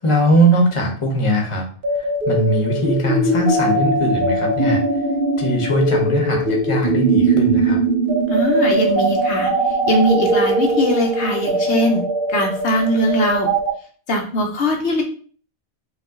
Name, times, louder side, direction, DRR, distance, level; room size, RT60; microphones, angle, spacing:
voice 1, 0.0-1.7 2.0-4.8 5.4-7.8, right 1 dB, 30° left, 2 dB, 0.9 m, -20 dB
sound 1, 1.8-13.7, right 2 dB, 55° right, 0.8 m, -20 dB
voice 2, 8.3-9.5 9.9-12.0 12.3-13.5 14.1-15.0, equal, 70° left, 2 dB, 1.1 m, -20 dB
5.4 x 2.4 x 3.7 m, 0.43 s
omnidirectional pair, 1.2 m